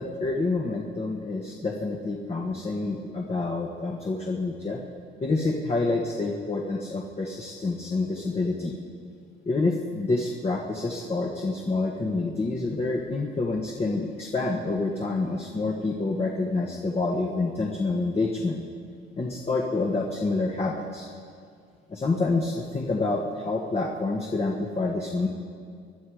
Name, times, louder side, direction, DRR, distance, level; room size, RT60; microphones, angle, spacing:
voice 1, 0.0-4.8 5.2-8.8 9.4-18.6 19.2-21.1 21.9-25.3, left 3 dB, 30° left, 0 dB, 1.5 m, -28 dB
22.0 x 11.5 x 5.0 m, 2.3 s
cardioid pair, 90°, 20 cm